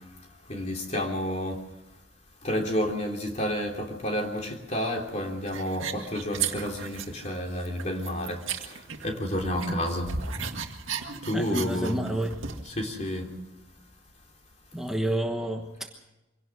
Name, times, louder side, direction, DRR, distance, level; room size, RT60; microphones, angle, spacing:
voice 1, 0.5-1.6 2.4-10.1 11.2-12.0 12.7-13.3, equal, 35° left, 2 dB, 3.3 m, -30 dB
sound 1, 5.5-7.3 7.6-9.3 9.6-12.7, right 6 dB, 85° right, 1.8 m, -35 dB
voice 2, 11.3-12.3 14.7-15.9, right 1 dB, ahead, 2 dB, 1.2 m, -29 dB
24.5 x 17.5 x 6.2 m, 1.0 s
head